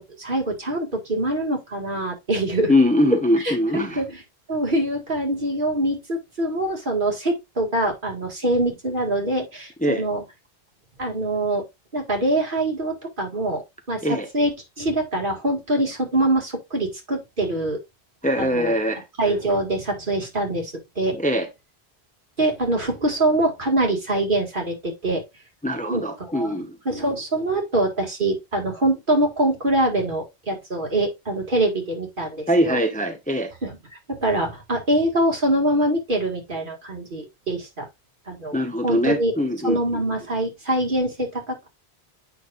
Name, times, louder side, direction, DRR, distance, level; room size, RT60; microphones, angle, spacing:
voice 1, 0.0-2.7 3.4-4.2 4.5-10.2 11.0-11.6 11.9-13.6 13.9-17.8 18.4-18.7 19.2-21.2 22.4-25.2 25.9-26.5 26.9-32.8 33.6-33.8 34.1-37.9 38.3-38.6 38.8-39.3 39.6-41.7, right 1 dB, 55° right, 2.2 m, -24 dB
voice 2, 2.7-4.0 9.8-10.0 14.0-14.3 18.2-19.0 21.1-21.5 25.6-26.8 32.5-33.5 38.5-39.8, left 1 dB, 10° left, 0.9 m, -22 dB
8.2 x 5.7 x 2.5 m
omnidirectional pair, 1.1 m